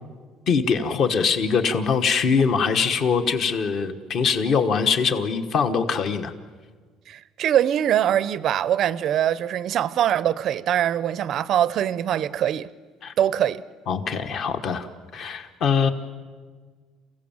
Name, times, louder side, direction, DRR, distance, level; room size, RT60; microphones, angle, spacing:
voice 1, 0.5-6.3 13.0-13.1 13.9-14.9 15.1-15.9, left 5 dB, 40° left, 1.3 m, -22 dB
voice 2, 7.1-12.7 13.2-13.6, right 10 dB, 45° right, 0.5 m, -23 dB
29.5 x 16.0 x 7.3 m
cardioid pair, 165°, 0 cm